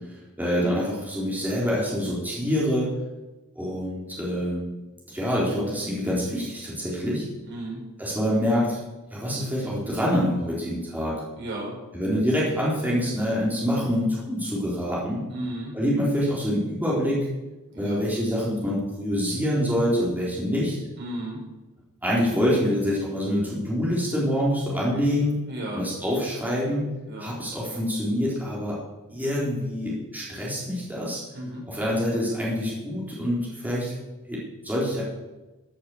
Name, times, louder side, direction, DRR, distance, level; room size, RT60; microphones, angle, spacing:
voice 1, 0.4-2.9 3.6-4.7 5.1-7.3 8.0-8.8 9.1-11.2 11.9-15.2 15.7-17.3 17.8-20.8 22.0-25.4 25.7-26.9 27.2-28.8 29.1-31.2 31.7-33.9 34.3-35.0, equal, 10° right, -6 dB, 3.9 m, -26 dB
voice 2, 7.4-7.8 11.3-11.7 15.3-15.7 17.7-18.0 21.0-21.4 25.5-25.8 27.1-27.3 31.3-31.7, right 1 dB, 50° right, -3 dB, 6.0 m, -34 dB
15.0 x 8.5 x 7.9 m, 1.1 s
head